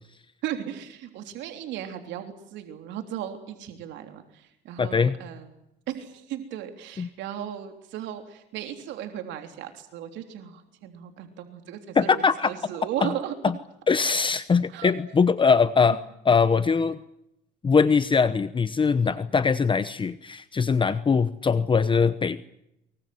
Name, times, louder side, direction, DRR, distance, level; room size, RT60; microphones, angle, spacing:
voice 1, 0.4-5.5 5.9-13.3 14.7-14.9 19.0-19.2, right 10 dB, 80° right, 6 dB, 3.4 m, -36 dB
voice 2, 4.8-5.2 7.0-7.1 11.9-12.5 13.0-13.1 13.9-16.0 16.2-17.0 17.6-22.4, left 5 dB, 25° left, 13 dB, 1.0 m, -22 dB
24.5 x 23.5 x 7.9 m, 0.83 s
cardioid pair, 105°, 18 cm